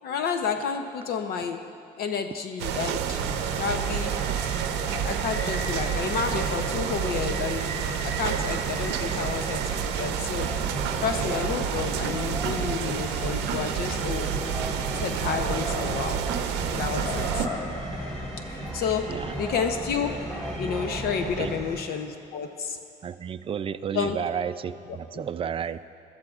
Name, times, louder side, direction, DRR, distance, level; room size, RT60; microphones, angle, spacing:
voice 1, 0.0-1.6 2.0-3.2 3.6-4.1 4.9-10.5 11.0-14.3 14.9-16.2 16.7-17.5 18.5-19.1 19.4-20.1 20.6-22.8 23.9-24.2 25.1-25.2, left 6 dB, 65° left, 6 dB, 0.8 m, -30 dB
sound 1, 2.6-17.5, right 9 dB, 90° right, 0.6 m, -29 dB
sound 2, 3.2-21.8, equal, 20° left, 2.9 m, -36 dB
sound 3, 10.4-21.6, right 1 dB, 5° left, 2.6 m, -37 dB
voice 2, 23.0-25.8, right 8 dB, 35° right, 13 dB, 0.4 m, -32 dB
21.0 x 13.0 x 2.5 m, 2.8 s
cardioid pair, 110°, 17 cm